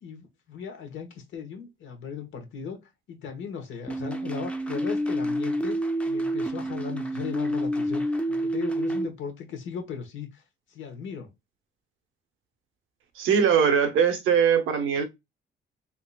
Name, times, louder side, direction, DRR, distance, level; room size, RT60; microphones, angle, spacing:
voice 1, 0.0-2.8 3.1-5.8 6.1-10.4 10.7-11.3, left 6 dB, 75° left, 1.1 m, -37 dB
sound 1, 3.9-9.1, equal, 5° left, 0.5 m, -28 dB
voice 2, 13.2-15.1, right 7 dB, 85° right, 0.7 m, -21 dB
3.7 x 2.8 x 2.3 m
cardioid pair, 90°, 20 cm